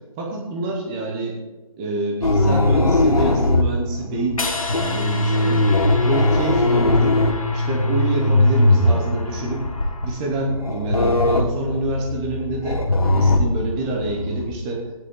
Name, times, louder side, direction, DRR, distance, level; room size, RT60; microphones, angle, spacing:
voice 1, 0.2-1.4 1.8-4.4 4.7-5.7 6.0-7.2 7.5-9.7 10.0-12.9 13.1-14.9, right 2 dB, 10° right, 0 dB, 0.9 m, -26 dB
sound 1, 2.2-14.5, left 2 dB, 85° left, 2.3 m, -20 dB
sound 2, 4.4-10.5, left 2 dB, 65° left, 1.9 m, -33 dB
14.5 x 9.9 x 3.8 m, 1.2 s
figure-of-eight pair, 170°, 18 cm